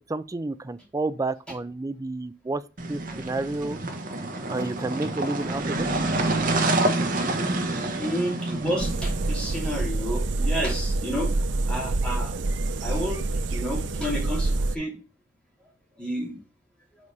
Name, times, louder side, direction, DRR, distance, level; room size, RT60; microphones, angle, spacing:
voice 1, 0.1-2.6 2.9-3.8 4.5-5.9, right 2 dB, 20° right, 0.4 m, -30 dB
sound 1, 2.8-9.8, right 2 dB, 50° right, 1.1 m, -27 dB
voice 2, 8.0-11.3 11.7-12.4 12.8-15.0 16.0-16.4, equal, 5° left, 2.7 m, -31 dB
sound 2, 8.8-14.8, right 2 dB, 75° right, 0.6 m, -27 dB
5.0 x 4.7 x 5.3 m
head